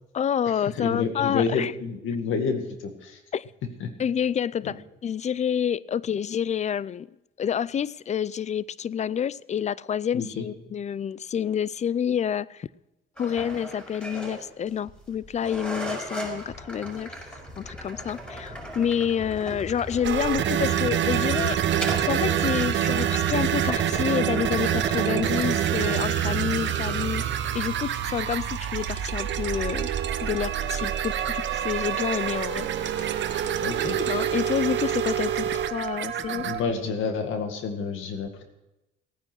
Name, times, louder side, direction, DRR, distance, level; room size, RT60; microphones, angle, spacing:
voice 1, 0.1-1.7 3.3-3.4 4.0-7.1 7.4-12.7 13.2-17.2 17.6-21.6 22.1-27.2 27.5-29.9 30.2-33.2 34.1-36.4, left 8 dB, 35° left, 0.4 m, -28 dB
voice 2, 0.8-3.2 3.8-3.9 4.6-4.7 10.1-10.5 33.6-34.0 36.2-38.4, left 5 dB, 80° left, 2.1 m, -29 dB
sound 1, 13.2-27.7, equal, 5° left, 5.2 m, -38 dB
sound 2, 20.0-36.6, right 10 dB, 65° right, 1.0 m, -26 dB
16.5 x 9.7 x 6.2 m
cardioid pair, 90°, 20 cm